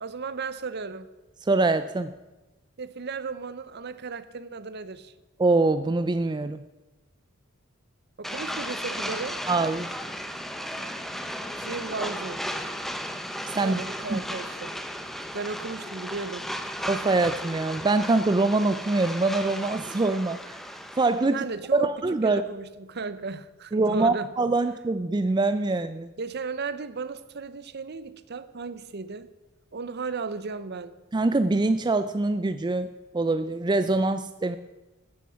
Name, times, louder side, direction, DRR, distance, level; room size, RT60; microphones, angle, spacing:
voice 1, 0.0-1.1 2.8-5.1 8.2-9.4 11.6-12.4 13.6-14.8 15.3-16.5 21.3-21.9 22.2-24.3 26.2-29.3 29.7-30.9, right 4 dB, 55° right, 14 dB, 0.8 m, -35 dB
voice 2, 1.4-2.1 5.4-6.6 9.5-9.9 13.5-13.8 14.1-14.2 16.9-20.5 20.9-21.4 21.7-22.4 23.7-26.1 31.1-34.6, right 3 dB, 20° right, 11 dB, 0.4 m, -24 dB
sound 1, 8.2-21.3, equal, ahead, 0.8 m, -35 dB
14.5 x 10.0 x 5.7 m, 1.1 s
head